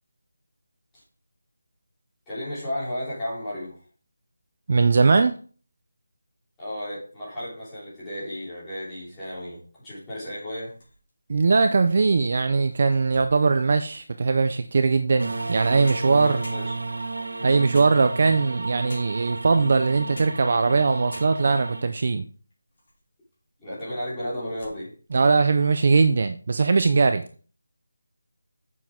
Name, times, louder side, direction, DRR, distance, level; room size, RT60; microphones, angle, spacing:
voice 1, 2.3-3.8 6.6-10.7 16.2-16.8 17.4-17.7 23.6-24.9, left 1 dB, 5° left, 3.1 m, -34 dB
voice 2, 4.7-5.3 11.3-16.4 17.4-22.2 25.1-27.2, right 4 dB, 35° right, 0.4 m, -20 dB
sound 1, 10.6-11.3 11.9-12.0 12.5-14.2 15.5-15.6 15.8-17.1 17.7-18.4 18.9-19.3 20.0-20.5 20.8-20.9 21.1-21.7 22.2-23.0 23.3-23.4 24.1-24.8 25.2-25.4 25.7-26.0, left 1 dB, 35° left, 3.5 m, -47 dB
sound 2, 15.2-21.8, right 3 dB, 70° right, 1.1 m, -33 dB
8.3 x 7.0 x 3.6 m
figure-of-eight pair, 180°, 0 cm